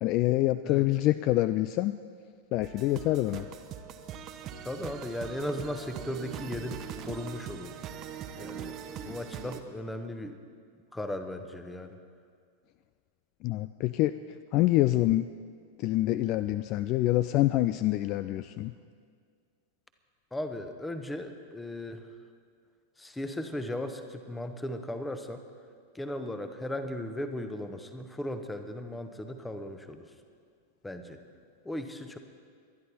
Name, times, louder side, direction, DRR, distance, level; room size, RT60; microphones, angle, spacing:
voice 1, 0.0-2.0 2.5-3.5 9.1-9.2 13.4-14.2 14.5-15.3 15.8-18.7, left 16 dB, 40° left, 13 dB, 0.3 m, -26 dB
sound 1, 2.6-9.6, right 8 dB, 35° right, 0.9 m, -41 dB
voice 2, 4.6-7.7 8.4-8.7 9.0-10.4 10.9-12.0 20.3-22.0 23.0-25.4 25.9-30.1 30.8-31.2 31.6-32.2, left 1 dB, 5° left, 8 dB, 1.0 m, -37 dB
22.5 x 11.0 x 4.3 m, 2.1 s
figure-of-eight pair, 90°, 0 cm